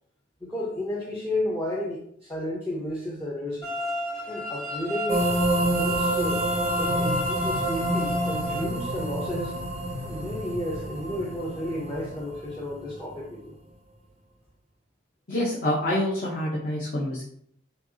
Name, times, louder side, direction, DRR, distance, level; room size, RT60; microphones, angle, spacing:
voice 1, 0.4-3.7 4.3-5.3 5.7-6.4 6.7-9.6 10.0-13.6, left 1 dB, 15° left, -3 dB, 0.6 m, -32 dB
sound 1, 3.6-8.6, left 1 dB, 30° left, 1.4 m, -32 dB
sound 2, 5.1-12.8, right 1 dB, 30° right, 0.4 m, -28 dB
sound 3, 6.8-12.2, left 3 dB, 75° left, 0.5 m, -38 dB
voice 2, 15.3-17.2, left 1 dB, 45° left, -6 dB, 0.8 m, -26 dB
5.4 x 2.4 x 2.7 m, 0.68 s
head